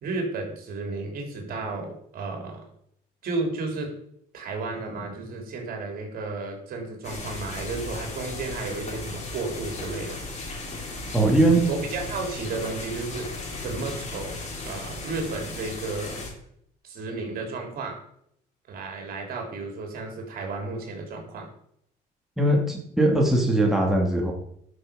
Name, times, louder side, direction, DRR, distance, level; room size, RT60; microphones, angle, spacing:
voice 1, 0.0-2.6 3.2-3.9 4.3-10.2 11.7-16.2 16.8-18.0 18.7-21.5, right 3 dB, 60° right, 2 dB, 3.5 m, -33 dB
sound 1, 7.0-16.3, left 2 dB, 40° left, 3.4 m, -36 dB
voice 2, 11.1-11.6 22.4-24.3, right 1 dB, ahead, -2 dB, 2.6 m, -20 dB
12.0 x 6.4 x 5.2 m, 0.70 s
cardioid pair, 110°, 17 cm